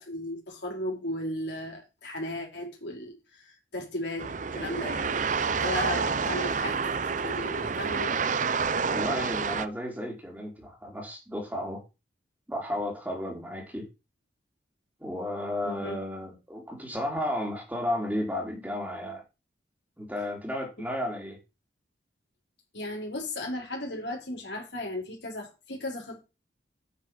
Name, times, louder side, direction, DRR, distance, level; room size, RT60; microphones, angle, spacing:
voice 1, 0.0-5.1 5.6-8.1 15.6-16.0 22.7-26.2, left 1 dB, 70° left, 4.8 m, -35 dB
sound 1, 4.2-9.7, right 5 dB, 40° right, 0.6 m, -28 dB
voice 2, 8.9-11.8 12.5-13.8 15.0-19.2 20.0-21.4, left 1 dB, 10° right, 3.5 m, -33 dB
9.8 x 6.2 x 5.9 m
head